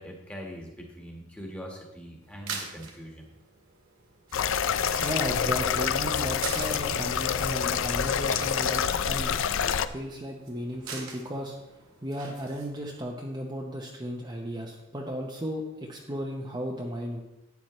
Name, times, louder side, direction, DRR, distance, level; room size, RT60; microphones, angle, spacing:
voice 1, 0.0-3.3, equal, 5° left, 0 dB, 1.5 m, -42 dB
sound 1, 2.2-13.0, right 5 dB, 70° right, 2.0 m, -44 dB
sound 2, 4.3-9.9, left 7 dB, 60° left, 0.4 m, -27 dB
voice 2, 5.0-9.4 9.9-17.2, equal, 20° right, -1 dB, 0.8 m, -35 dB
11.5 x 9.5 x 3.2 m, 0.96 s
head